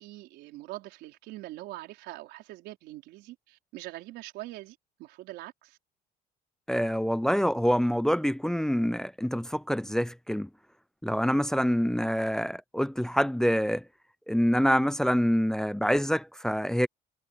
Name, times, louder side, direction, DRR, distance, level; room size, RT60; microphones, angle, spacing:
voice 1, 0.0-5.8, right 17 dB, 90° right, 4.6 m, -43 dB
voice 2, 6.7-10.5 11.0-13.8 14.3-16.9, equal, 5° left, 0.5 m, -26 dB
cardioid pair, 110°, 17 cm